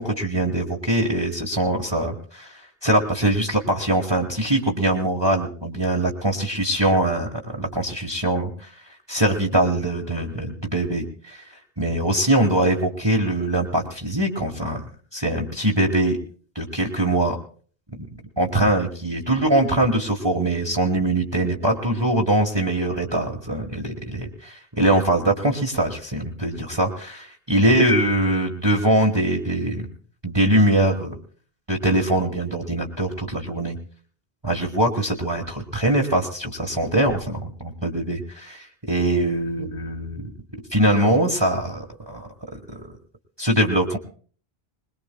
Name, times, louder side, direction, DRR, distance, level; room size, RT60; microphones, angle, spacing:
voice 1, 0.0-8.7 9.1-14.8 15.1-16.2 16.5-17.4 17.9-18.1 18.4-29.9 30.2-31.1 31.7-33.7 34.4-40.3 40.7-42.3 43.4-44.0, right 1 dB, 25° right, 0 dB, 1.4 m, -22 dB
21.5 x 21.0 x 2.2 m, 0.43 s
omnidirectional pair, 1.0 m